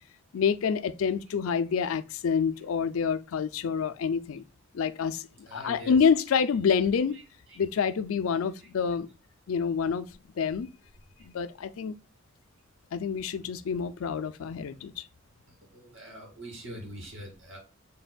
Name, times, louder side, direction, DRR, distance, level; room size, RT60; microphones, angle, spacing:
voice 1, 0.3-4.4 4.7-7.2 7.6-9.1 9.5-10.1 10.4-10.7 11.2-11.9 12.9-15.0, left 6 dB, 80° left, 0.4 m, -27 dB
voice 2, 5.5-6.1 15.7-17.6, equal, 60° right, 2.1 m, -43 dB
6.6 x 3.4 x 2.2 m
head